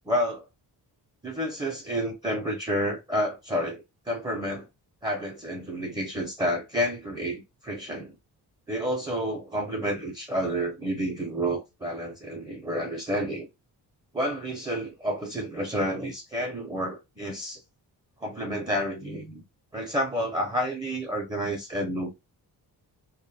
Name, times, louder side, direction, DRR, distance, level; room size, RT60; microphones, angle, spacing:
voice 1, 0.1-0.5 1.2-4.7 5.0-8.1 8.7-13.5 14.1-17.6 18.2-19.4 19.7-22.1, equal, 10° right, 0.4 m, -30 dB
2.1 x 2.0 x 3.1 m
wide cardioid pair, 125°, 40 cm